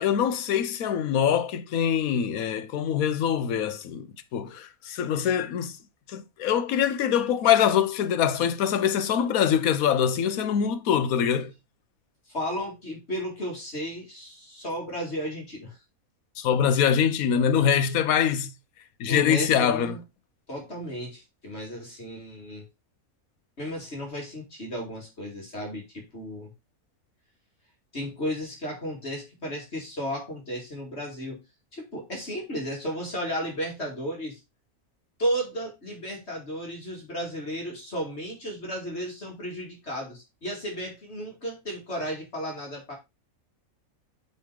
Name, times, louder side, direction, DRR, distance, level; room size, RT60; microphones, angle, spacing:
voice 1, 0.0-4.1 4.3-5.7 6.1-11.5 16.4-18.5 19.0-19.9, left 8 dB, 75° left, 1.2 m, -24 dB
voice 2, 12.3-15.8 19.1-20.0 20.5-22.7 23.6-26.5 27.9-31.4 31.7-34.4 35.2-43.0, equal, 45° left, 2.7 m, -34 dB
5.5 x 5.5 x 4.6 m
omnidirectional pair, 1.5 m